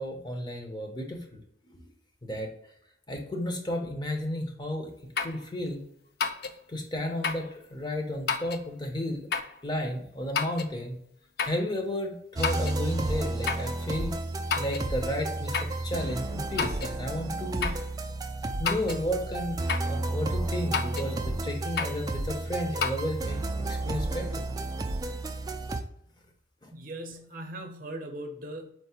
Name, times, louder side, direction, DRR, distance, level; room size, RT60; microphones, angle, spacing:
voice 1, 0.0-1.4 2.2-2.5 3.1-4.9 5.2-5.8 6.7-9.3 9.6-11.0 11.5-14.1 14.6-17.7 18.6-23.4 23.7-24.5 26.6-26.7, left 1 dB, 25° left, 2 dB, 0.7 m, -33 dB
sound 1, 5.2-5.4 6.2-6.6 7.2-7.5 8.3-8.7 9.3-9.6 10.3-10.7 11.4-11.6 12.4-12.8 13.5-13.7 14.5-14.9 15.5-15.8 16.6-17.0 17.6-17.9 18.6-19.0 19.7-20.0 20.7-21.1 21.8-22.0 22.8-23.0, left 5 dB, 55° left, 0.4 m, -30 dB
sound 2, 12.4-25.8, right 2 dB, 20° right, 0.3 m, -32 dB
voice 2, 26.7-28.7, right 1 dB, 50° right, 4 dB, 0.7 m, -39 dB
4.5 x 2.1 x 4.2 m, 0.69 s
head